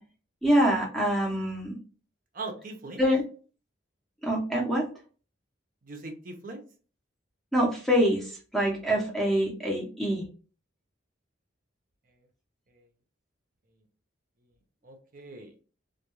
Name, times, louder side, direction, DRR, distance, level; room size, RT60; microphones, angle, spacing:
voice 1, 0.4-1.8 3.0-3.2 4.2-4.9 7.5-10.2, equal, ahead, -1 dB, 0.6 m, -25 dB
voice 2, 2.3-3.0 5.9-6.6 14.8-15.5, right 3 dB, 40° right, 4 dB, 0.5 m, -40 dB
2.3 x 2.2 x 2.9 m, 0.38 s
head